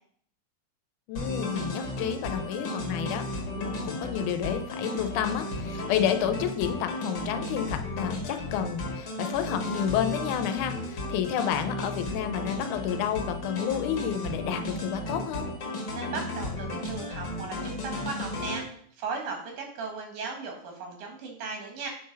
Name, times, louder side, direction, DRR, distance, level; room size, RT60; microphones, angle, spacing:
voice 1, 1.1-3.3 3.6-15.5, left 9 dB, 85° left, 8 dB, 2.1 m, -30 dB
sound 1, 1.2-18.6, left 1 dB, 45° left, 1.7 m, -34 dB
voice 2, 15.9-21.9, right 4 dB, 90° right, 2 dB, 3.0 m, -37 dB
7.2 x 3.9 x 5.2 m, 0.62 s
omnidirectional pair, 3.4 m